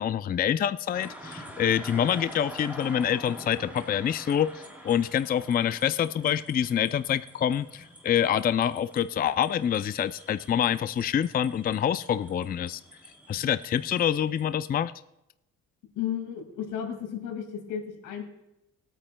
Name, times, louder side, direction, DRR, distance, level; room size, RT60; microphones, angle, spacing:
voice 1, 0.0-12.8 13.3-14.9, left 9 dB, 30° left, 13 dB, 0.4 m, -26 dB
sound 1, 0.9-14.4, equal, 5° right, 2.8 m, -46 dB
voice 2, 16.0-18.2, left 9 dB, 85° left, 3 dB, 2.2 m, -33 dB
20.5 x 8.8 x 2.2 m, 0.88 s
cardioid pair, 90°, 30 cm